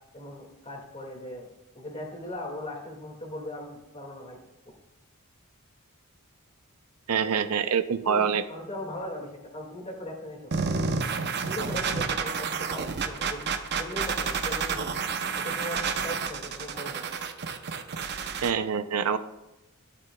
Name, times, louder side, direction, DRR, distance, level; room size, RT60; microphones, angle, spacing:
voice 1, 0.1-1.5 1.7-4.4 8.0-10.5 11.1-14.9 15.4-17.0, left 1 dB, 30° left, 1 dB, 2.0 m, -39 dB
voice 2, 7.1-8.4 18.4-19.2, right 7 dB, 90° right, 11 dB, 0.5 m, -25 dB
sound 1, 10.5-18.5, right 5 dB, 50° right, 0.7 m, -30 dB
12.0 x 11.0 x 2.3 m, 0.96 s
head